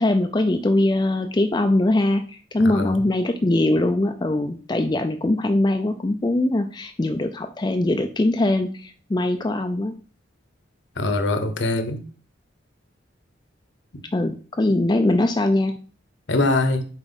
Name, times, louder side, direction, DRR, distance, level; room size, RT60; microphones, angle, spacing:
voice 1, 0.0-9.9 14.1-15.7, left 1 dB, 20° left, 0.4 m, -21 dB
voice 2, 2.6-3.1 11.0-12.0 16.3-16.9, left 2 dB, 65° left, 0.9 m, -23 dB
7.2 x 4.5 x 4.0 m
head